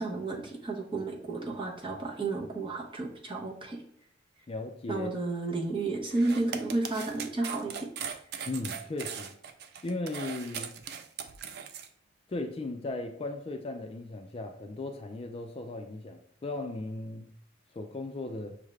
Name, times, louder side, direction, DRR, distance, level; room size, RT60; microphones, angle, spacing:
voice 1, 0.0-3.8 4.9-7.9, right 2 dB, 25° right, -1 dB, 0.9 m, -32 dB
voice 2, 4.5-5.1 8.5-9.3 9.8-10.7 12.3-17.3 17.7-18.6, left 2 dB, 30° left, 5 dB, 0.4 m, -37 dB
sound 1, 6.1-11.9, right 7 dB, 55° right, 0.4 m, -39 dB
6.4 x 2.5 x 3.2 m, 0.69 s
head